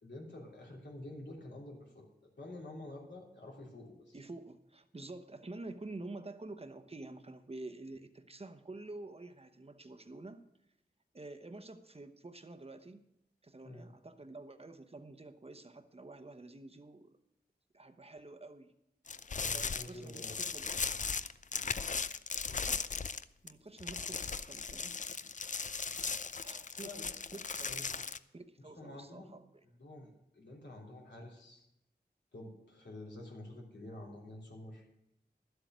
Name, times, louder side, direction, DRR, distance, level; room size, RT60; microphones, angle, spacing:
voice 1, 0.0-4.2 13.6-13.9 19.3-20.3 26.8-27.1 27.7-27.8 28.7-29.3 29.8-31.7 32.3-34.9, left 1 dB, 90° left, -2 dB, 3.1 m, -49 dB
voice 2, 4.1-10.4 11.1-13.0 13.4-17.2 17.7-18.7 19.5-20.7 22.5-22.9 23.4-25.0 26.4-26.9 27.3-27.8 28.3-29.6, right 2 dB, 35° right, 9 dB, 0.9 m, -48 dB
sound 1, 19.1-23.5 23.8-28.2, left 5 dB, 45° left, 0.4 m, -37 dB
12.0 x 8.0 x 6.2 m, 0.83 s
wide cardioid pair, 65°, 18 cm